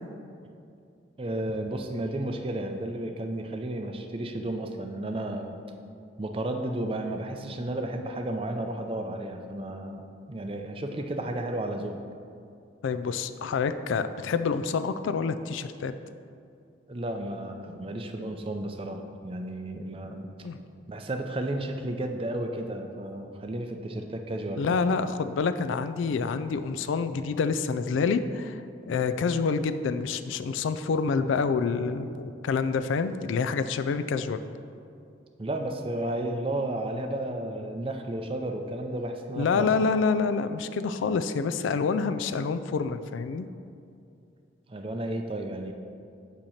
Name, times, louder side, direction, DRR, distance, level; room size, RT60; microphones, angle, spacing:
voice 1, 1.2-5.6 6.2-12.0 16.9-20.3 20.9-24.8 35.4-39.7 44.7-45.7, right 1 dB, 30° right, 5 dB, 0.4 m, -33 dB
voice 2, 12.8-15.9 20.4-20.6 24.6-28.6 28.8-34.4 39.4-43.5, left 5 dB, 80° left, 11 dB, 0.3 m, -27 dB
8.6 x 2.9 x 6.4 m, 2.5 s
head